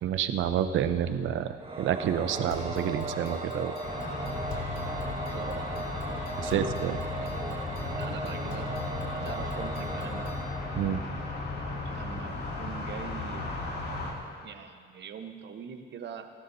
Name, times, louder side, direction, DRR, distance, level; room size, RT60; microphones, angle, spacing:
voice 1, 0.0-3.7 6.4-7.0 10.7-11.0, right 9 dB, 80° right, 10 dB, 0.7 m, -29 dB
Singing / Musical instrument, 1.6-11.6, right 2 dB, 25° right, 1.7 m, -38 dB
sound 1, 2.5-10.5, left 2 dB, 80° left, 3.1 m, -43 dB
sound 2, 3.8-14.1, left 3 dB, 55° left, 2.6 m, -36 dB
voice 2, 5.2-5.7 6.4-6.7 7.1-8.7 9.1-10.3 11.8-13.9 14.4-16.3, right 7 dB, 60° right, 7 dB, 1.1 m, -43 dB
29.5 x 12.0 x 2.7 m, 2.1 s
cardioid pair, 90°, 20 cm